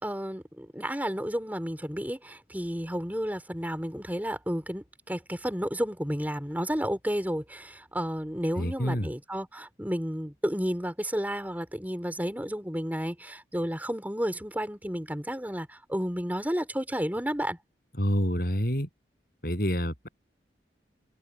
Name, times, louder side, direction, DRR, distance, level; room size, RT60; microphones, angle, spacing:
voice 1, 0.0-17.6, equal, 10° right, 3.9 m, -32 dB
voice 2, 8.6-9.1 18.0-18.9 19.4-20.1, equal, 50° left, 7.9 m, -27 dB
head